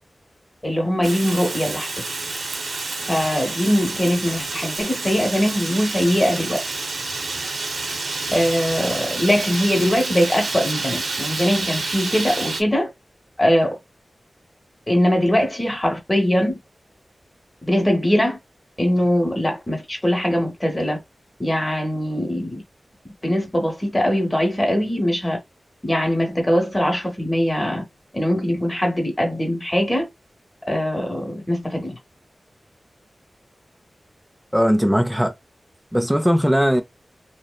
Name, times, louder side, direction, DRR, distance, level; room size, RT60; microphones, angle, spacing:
voice 1, 0.6-2.0 3.1-6.6 8.3-12.9 13.4-13.8 14.9-16.6 17.6-18.4 18.8-21.0 21.4-22.6 23.2-25.4 25.8-27.8 28.1-30.1 30.7-32.0, equal, 20° left, 0.9 m, -21 dB
Fire, 1.0-12.6, right 3 dB, 85° right, 0.5 m, -28 dB
voice 2, 34.5-35.3 35.9-36.8, equal, 5° right, 0.4 m, -18 dB
2.7 x 2.0 x 2.2 m
wide cardioid pair, 95°, 0 cm